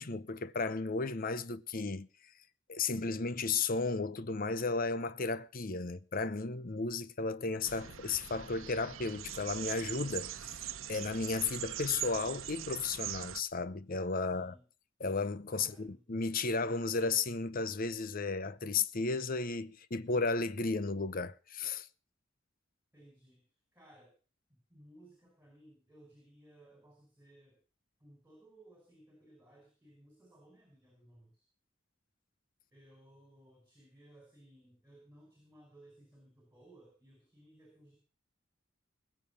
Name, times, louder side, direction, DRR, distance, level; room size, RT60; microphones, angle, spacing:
voice 1, 0.0-2.1 2.7-10.3 10.9-14.5 15.0-21.9, left 4 dB, 45° left, 0.8 m, -34 dB
sound 1, 7.6-13.4, right 11 dB, 85° right, 1.0 m, -42 dB
voice 2, 14.1-14.7 15.5-16.0 22.9-24.1 24.5-27.6 28.0-31.4 32.7-38.0, right 1 dB, 10° right, 5.3 m, -60 dB
20.5 x 7.5 x 7.0 m
head